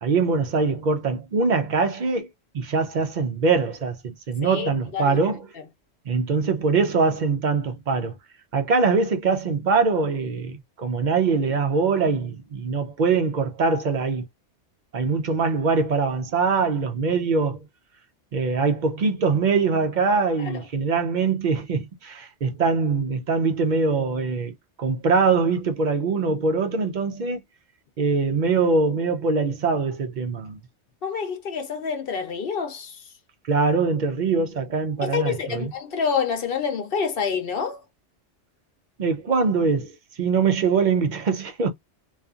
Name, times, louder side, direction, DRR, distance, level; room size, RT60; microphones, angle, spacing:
voice 1, 0.0-2.3 2.5-5.5 6.1-8.2 8.5-14.3 14.9-17.7 18.3-24.5 24.8-27.4 28.0-30.6 33.5-35.7 39.0-41.7, right 4 dB, 60° right, 0.5 m, -23 dB
voice 2, 4.4-5.2 20.4-20.6 31.0-33.0 35.0-37.8, left 6 dB, 55° left, 0.8 m, -27 dB
2.6 x 2.4 x 2.4 m
omnidirectional pair, 1.2 m